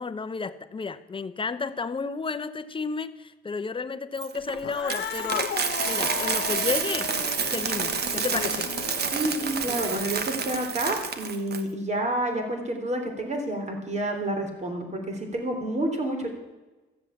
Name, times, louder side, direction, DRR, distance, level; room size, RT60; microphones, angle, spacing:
voice 1, 0.0-5.5 5.9-7.1 7.5-8.7, left 4 dB, 25° left, 13 dB, 0.8 m, -32 dB
Coin (dropping), 4.2-11.6, right 6 dB, 55° right, 1.3 m, -29 dB
Cat, 4.6-10.2, left 10 dB, 65° left, 0.8 m, -35 dB
voice 2, 9.1-16.3, right 1 dB, 35° right, 3 dB, 3.5 m, -29 dB
14.0 x 7.6 x 8.4 m, 1.1 s
cardioid pair, 90°, 20 cm